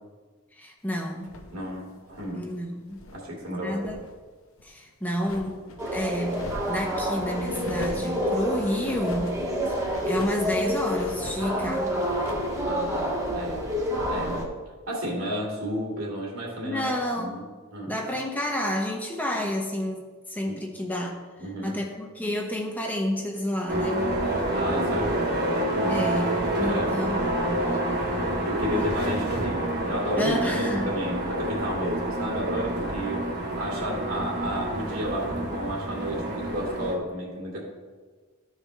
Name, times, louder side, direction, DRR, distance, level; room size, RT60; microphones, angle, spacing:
voice 1, 0.5-1.3 2.3-3.0 3.5-4.0 4.6-5.6 5.9-9.4 10.1-12.1 16.6-17.4 17.9-21.2 21.6-24.1 25.9-27.2 28.8-28.9 30.2-30.9 32.6-32.7, equal, 10° left, 0 dB, 0.8 m, -30 dB
sound 1, 1.2-3.3 3.6-4.2 4.5-5.8 6.3-7.0 7.5-8.2 8.8-9.4 9.9-10.5 10.9-11.5 11.9-12.6, left 2 dB, 70° left, 0.9 m, -42 dB
voice 2, 1.5-2.4 3.1-4.0 12.6-13.6 14.1-14.5 14.9-17.4 17.7-17.9 20.5-20.6 21.4-21.8 24.5-25.4 25.7-26.0 26.6-26.9 27.8-33.3 33.6-37.6, equal, 70° right, -3 dB, 2.6 m, -32 dB
sound 2, 5.8-14.5, equal, 15° right, 1.2 m, -28 dB
sound 3, 23.7-37.0, right 1 dB, 50° right, 1.3 m, -28 dB
13.5 x 4.8 x 3.3 m, 1.4 s
head